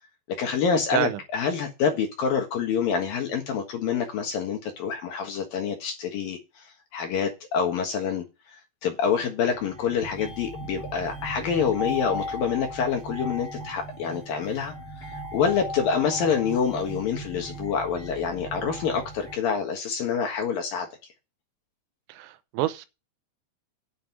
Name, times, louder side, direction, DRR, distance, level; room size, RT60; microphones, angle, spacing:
voice 1, 0.4-6.6 6.9-8.2 8.8-14.7 15.3-20.9, left 6 dB, 60° left, 2.7 m, -26 dB
sound 1, 9.4-19.3, equal, 10° left, 1.1 m, -37 dB
voice 2, 22.1-22.9, right 13 dB, 80° right, 3.1 m, -28 dB
9.7 x 6.4 x 7.2 m
omnidirectional pair, 5.5 m